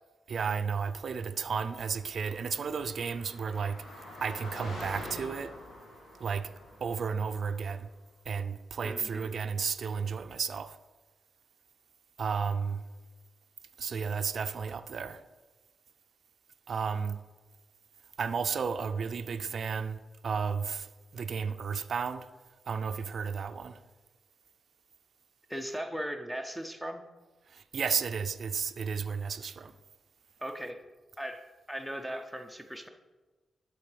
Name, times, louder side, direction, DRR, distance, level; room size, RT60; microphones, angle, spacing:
voice 1, 0.3-3.8 4.2-5.5 6.2-6.5 6.8-7.9 8.3-10.8 12.2-12.8 13.8-15.2 16.7-17.2 18.2-20.9 21.1-22.3 22.7-23.8 27.5-29.7, right 6 dB, 65° right, 0.4 m, -33 dB
Car passing by, 1.7-7.6, left 1 dB, 80° left, 2.0 m, -46 dB
voice 2, 8.8-9.3 25.5-27.0 30.4-30.8 31.2-32.9, equal, ahead, 0.6 m, -38 dB
11.5 x 4.5 x 3.3 m
cardioid pair, 60°, 0 cm